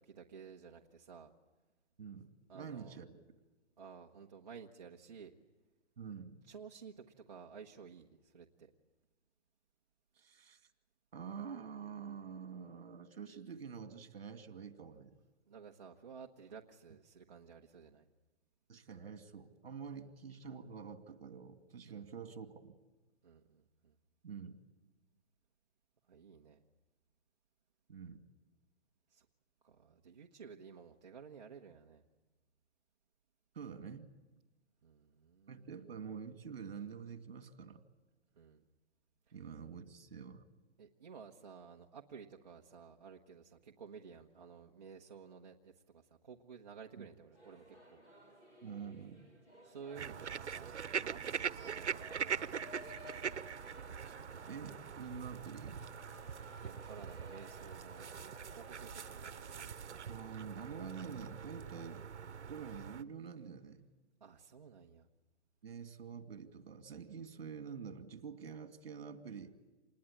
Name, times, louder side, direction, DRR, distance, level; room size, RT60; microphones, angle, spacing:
voice 1, 0.0-1.3 2.5-3.0 3.8-5.3 6.5-8.7 15.5-18.1 21.9-22.1 23.2-23.9 26.1-26.6 29.1-29.2 29.6-32.0 34.8-35.8 38.4-38.6 39.3-39.4 40.8-48.0 49.6-52.2 56.6-59.8 64.2-65.1, right 6 dB, 40° right, 0 dB, 1.2 m, -54 dB
voice 2, 2.0-3.1 6.0-6.4 10.2-10.6 11.1-15.2 18.7-22.7 24.2-24.6 27.9-28.2 33.5-34.1 35.5-37.8 39.3-40.4 47.0-47.1 48.6-49.2 54.5-55.8 60.1-62.1 62.5-63.8 65.6-69.5, right 6 dB, 55° right, 8 dB, 2.4 m, -47 dB
Singing / Musical instrument, 47.3-63.6, equal, 10° left, 2.4 m, -58 dB
sound 1, 49.9-63.0, right 7 dB, 85° right, 1.1 m, -43 dB
27.5 x 20.5 x 8.7 m, 1.2 s
hypercardioid pair, 175°, 34 cm